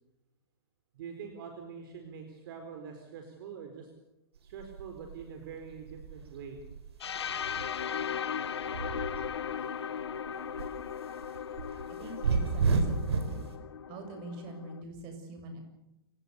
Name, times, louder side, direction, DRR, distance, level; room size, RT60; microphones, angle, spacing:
voice 1, 0.9-3.9 4.4-6.6, right 6 dB, 60° right, 4 dB, 4.4 m, -44 dB
sound 1, 4.4-9.6 10.0-13.4, right 4 dB, 85° right, 4.8 m, -33 dB
sound 2, 7.0-14.8, left 8 dB, 90° left, 1.5 m, -37 dB
voice 2, 12.0-13.4 13.9-15.6, right 2 dB, 40° right, 5 dB, 7.3 m, -44 dB
28.0 x 17.5 x 7.0 m, 0.91 s
hypercardioid pair, 140°, 13 cm